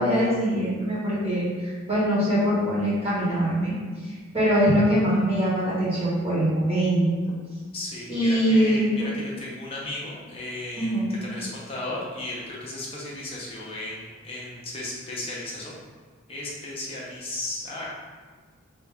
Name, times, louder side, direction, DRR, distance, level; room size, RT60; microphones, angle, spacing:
voice 1, 0.0-3.7 4.1-7.1 8.1-9.1 10.8-11.1, equal, 30° right, -10 dB, 1.4 m, -23 dB
voice 2, 7.7-15.7 16.3-17.9, left 1 dB, 25° left, -5 dB, 0.7 m, -35 dB
3.1 x 2.6 x 3.4 m, 1.5 s
head